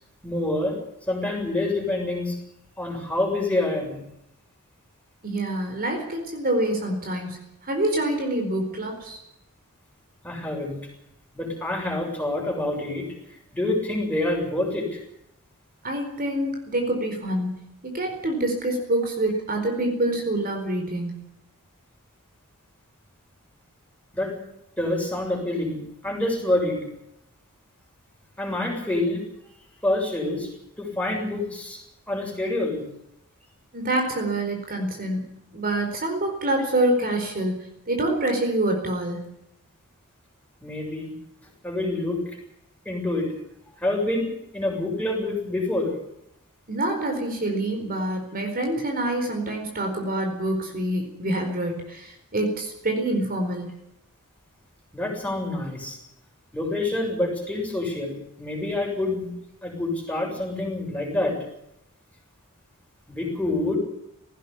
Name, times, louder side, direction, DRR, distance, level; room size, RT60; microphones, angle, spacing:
voice 1, 0.2-0.8 1.1-2.4 2.8-4.0 10.2-10.8 11.3-15.0 24.1-24.4 24.8-26.8 28.4-29.2 29.8-30.5 30.8-31.8 32.1-32.8 40.6-41.1 41.6-42.2 42.9-43.3 43.8-44.3 44.5-45.9 54.9-56.0 56.5-58.1 58.4-59.3 59.6-61.4 63.1-63.8, left 2 dB, 5° left, 0 dB, 7.2 m, -27 dB
voice 2, 5.2-9.2 15.8-17.5 17.8-21.1 33.7-39.3 46.7-53.7, right 1 dB, 40° right, 3 dB, 4.5 m, -26 dB
19.0 x 16.0 x 10.0 m, 0.81 s
head